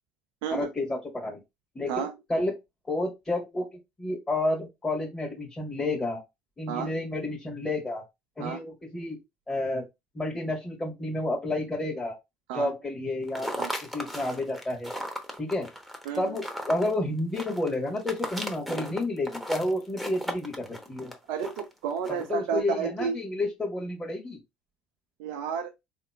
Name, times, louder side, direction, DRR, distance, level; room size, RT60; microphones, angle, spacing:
voice 1, 0.5-1.4 1.7-2.5 2.8-3.6 4.0-6.2 6.6-8.0 8.4-9.2 9.5-9.8 10.1-12.2 12.5-13.5 13.9-14.9 15.4-15.7 16.2-21.1 22.1-24.4, left 2 dB, 20° left, 1.3 m, -30 dB
sound 1, 13.2-22.3, equal, ahead, 0.9 m, -36 dB
voice 2, 16.1-16.4 21.3-23.2 25.2-25.7, right 7 dB, 70° right, 0.4 m, -31 dB
3.6 x 2.9 x 2.3 m
hypercardioid pair, 65°, 4 cm